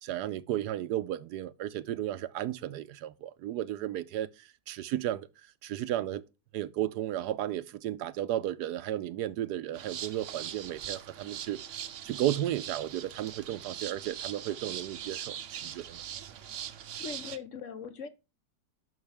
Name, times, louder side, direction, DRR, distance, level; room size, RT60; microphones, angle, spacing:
voice 1, 0.0-5.3 5.6-6.2 6.5-11.6 12.0-15.4 15.6-16.0, right 12 dB, 80° right, 1.2 m, -34 dB
sound 1, 9.7-17.4, right 9 dB, 60° right, 0.9 m, -41 dB
voice 2, 16.9-18.1, left 6 dB, 55° left, 1.0 m, -40 dB
11.0 x 5.7 x 3.3 m
omnidirectional pair, 1.7 m